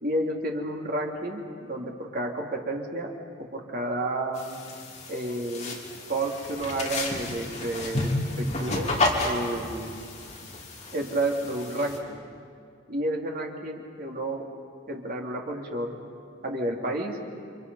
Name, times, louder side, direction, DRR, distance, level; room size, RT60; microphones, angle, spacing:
voice 1, 0.0-4.6 5.1-5.8 6.1-8.1 8.4-8.9 9.2-9.9 10.9-12.2 12.9-14.5 14.9-16.0 16.4-17.2, right 1 dB, 50° right, 0 dB, 2.9 m, -31 dB
sound 1, 4.3-12.0, left 2 dB, 35° left, 3.3 m, -31 dB
30.0 x 26.5 x 5.6 m, 2.2 s
head